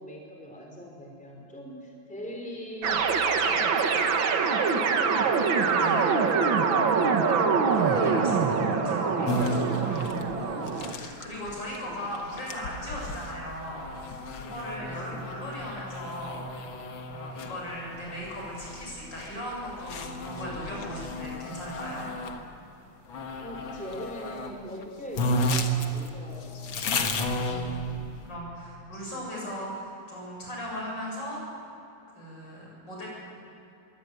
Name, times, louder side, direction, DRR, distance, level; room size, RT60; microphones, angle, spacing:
voice 1, 0.0-5.5 11.8-12.1 15.1-15.2 23.4-27.1 29.1-29.2, equal, 5° left, 0 dB, 3.6 m, -41 dB
sound 1, 2.8-10.9, right 5 dB, 80° right, 2.2 m, -24 dB
voice 2, 5.5-6.3 6.7-16.4 17.1-22.1 27.4-31.4 32.1-33.1, equal, 65° left, -3 dB, 7.9 m, -38 dB
sound 2, 9.3-22.4 23.1-24.5 24.8-24.9 25.1-28.3, left 1 dB, 85° left, 2.3 m, -33 dB
22.5 x 17.5 x 9.4 m, 2.9 s
omnidirectional pair, 2.1 m